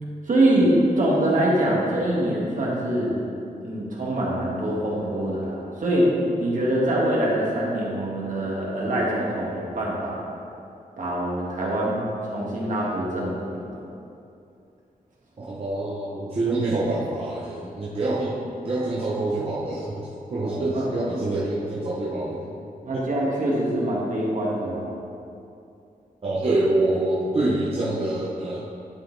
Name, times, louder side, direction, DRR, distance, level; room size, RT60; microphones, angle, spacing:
voice 1, 0.3-3.1 3.6-6.1 6.4-10.2 11.0-13.8 20.4-20.9 22.8-24.9, right 1 dB, 60° right, -5 dB, 1.6 m, -24 dB
voice 2, 15.4-18.4 18.6-22.4 22.9-23.1 26.2-28.6, right 2 dB, 40° right, -7 dB, 0.9 m, -26 dB
11.0 x 4.0 x 4.0 m, 2.6 s
wide cardioid pair, 160°, 15 cm